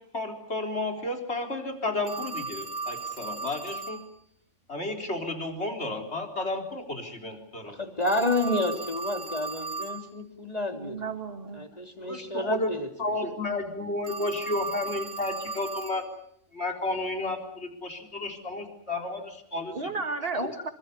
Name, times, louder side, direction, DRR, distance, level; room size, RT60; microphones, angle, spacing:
voice 1, 0.1-4.0 4.7-7.8 12.0-16.0 16.5-19.8 20.3-20.5, left 2 dB, 60° left, 4 dB, 4.3 m, -32 dB
Telephone, 2.1-4.0 8.0-10.1 14.0-16.0, right 3 dB, 85° right, 3.5 m, -36 dB
voice 2, 7.7-11.0 11.5-12.9, left 1 dB, 30° left, 4 dB, 3.6 m, -29 dB
voice 3, 10.7-11.6 19.7-20.7, right 4 dB, 50° right, 7 dB, 2.4 m, -33 dB
27.5 x 24.5 x 7.0 m, 0.72 s
omnidirectional pair, 1.3 m